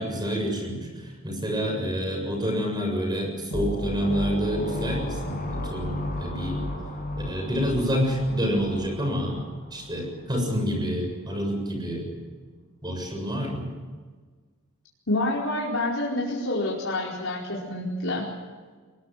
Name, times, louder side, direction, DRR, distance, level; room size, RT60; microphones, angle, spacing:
voice 1, 0.0-6.6 7.3-9.4 9.7-12.1 12.8-13.7, equal, 20° right, 3 dB, 7.2 m, -28 dB
sound 1, 3.5-10.0, left 1 dB, 40° left, 6.7 m, -33 dB
voice 2, 15.1-18.2, left 2 dB, 70° left, -5 dB, 4.9 m, -27 dB
22.0 x 21.5 x 7.6 m, 1.4 s
head